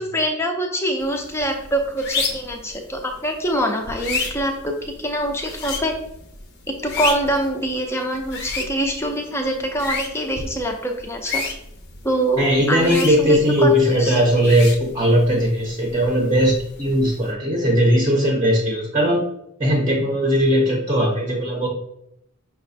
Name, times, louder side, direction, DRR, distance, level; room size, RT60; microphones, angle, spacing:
voice 1, 0.0-4.7 5.0-5.9 6.7-11.4 12.0-14.2, right 1 dB, 10° left, 3 dB, 0.5 m, -24 dB
sound 1, 1.0-17.3, left 4 dB, 50° left, 0.7 m, -32 dB
voice 2, 12.4-19.2 19.6-21.7, equal, 20° right, -1 dB, 0.7 m, -18 dB
5.7 x 2.1 x 4.1 m, 0.78 s
head